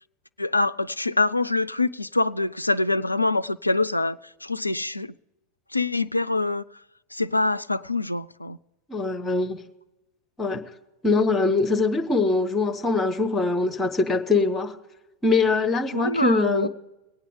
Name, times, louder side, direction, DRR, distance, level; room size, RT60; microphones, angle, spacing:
voice 1, 0.4-5.1 5.7-6.6 7.1-8.6 15.9-16.7, left 2 dB, 85° left, 0.3 m, -25 dB
voice 2, 8.9-9.6 10.4-10.6 11.0-14.7 15.2-16.7, left 3 dB, 15° left, 1.3 m, -22 dB
22.5 x 9.0 x 3.7 m
figure-of-eight pair, 90°, 0 cm